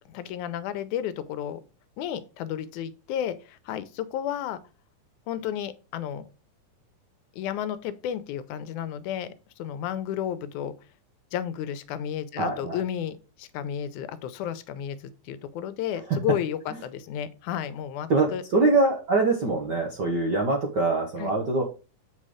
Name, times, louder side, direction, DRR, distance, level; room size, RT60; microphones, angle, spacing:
voice 1, 0.1-1.6 2.0-4.6 5.3-6.3 7.3-9.3 9.6-10.7 11.3-18.4 21.2-21.4, left 10 dB, 80° left, 13 dB, 2.0 m, -32 dB
voice 2, 12.4-12.8 16.1-16.2 18.1-21.6, right 3 dB, 65° right, 1 dB, 1.1 m, -24 dB
8.1 x 4.3 x 4.9 m, 0.32 s
omnidirectional pair, 3.5 m